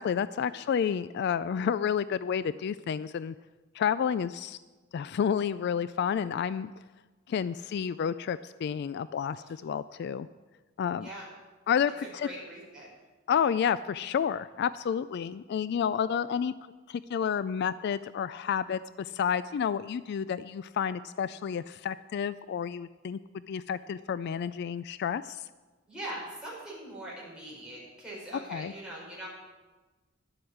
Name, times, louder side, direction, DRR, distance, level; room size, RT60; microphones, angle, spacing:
voice 1, 0.0-3.3 3.8-4.6 4.9-6.7 7.3-10.3 10.8-11.1 11.7-12.3 13.3-16.5 16.9-23.2 23.5-25.4 28.5-28.7, left 7 dB, 55° left, 15 dB, 0.3 m, -30 dB
voice 2, 12.0-12.9 15.8-15.9 25.9-29.3, right 1 dB, 5° right, -6 dB, 4.9 m, -42 dB
11.0 x 7.8 x 8.5 m, 1.3 s
head